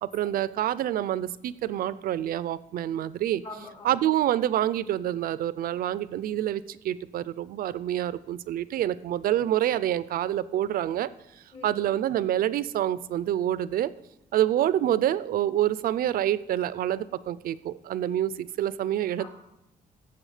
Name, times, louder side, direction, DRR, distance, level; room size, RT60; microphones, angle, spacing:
voice 1, 0.0-3.4 3.8-11.1 11.6-13.9 14.3-19.3, right 12 dB, 75° right, 17 dB, 0.5 m, -27 dB
voice 2, 3.4-4.0 11.5-11.8 14.7-15.1 19.2-19.3, left 2 dB, 45° left, 0 dB, 3.8 m, -44 dB
16.5 x 7.1 x 5.0 m, 0.87 s
cardioid pair, 150°, 15 cm